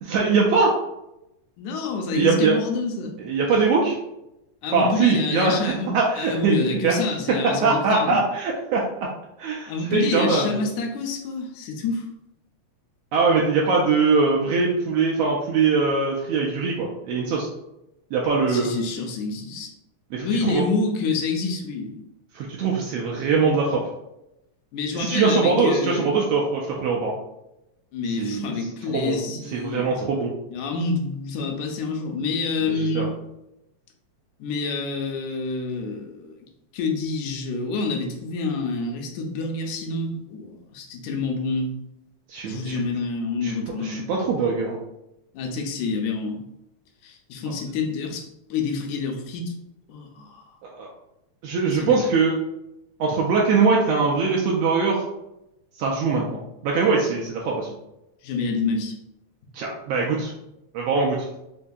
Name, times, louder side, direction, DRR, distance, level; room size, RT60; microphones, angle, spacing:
voice 1, 0.1-0.7 2.1-2.5 3.2-4.0 4.7-6.5 6.8-7.0 7.4-9.1 9.4-10.6 13.1-17.5 18.1-18.8 20.1-20.7 22.3-23.8 24.9-27.1 28.2-28.5 28.9-29.2 29.5-30.3 32.6-33.1 42.3-42.8 43.4-43.5 43.8-44.8 50.8-50.9 51.4-52.3 53.0-55.0 55.8-57.7 59.5-60.3 60.7-61.3, right 4 dB, 80° right, -2 dB, 1.5 m, -22 dB
voice 2, 1.6-3.2 4.6-8.2 9.7-12.0 18.5-19.7 20.2-22.0 24.7-26.1 27.9-29.9 30.5-33.1 34.4-36.4 36.7-41.8 42.5-44.1 45.3-46.4 47.0-49.5 49.9-50.5 51.7-52.1 58.2-59.0, left 4 dB, 85° left, 3 dB, 2.0 m, -27 dB
4.9 x 2.6 x 2.2 m, 0.88 s
omnidirectional pair, 3.3 m